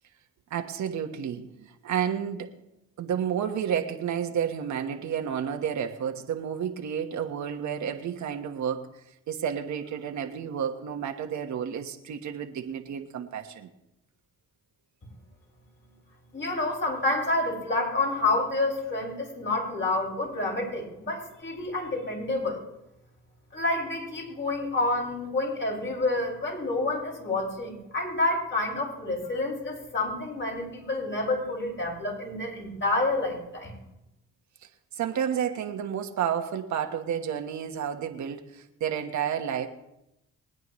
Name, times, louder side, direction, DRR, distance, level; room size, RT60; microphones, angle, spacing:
voice 1, 0.5-2.5 3.0-8.9 9.3-13.7 34.9-39.7, right 8 dB, 70° right, 5 dB, 1.4 m, -31 dB
voice 2, 16.3-22.6 23.5-33.7, left 2 dB, 40° left, -2 dB, 5.8 m, -28 dB
23.5 x 9.4 x 3.2 m, 0.86 s
supercardioid pair, 70°, 30 cm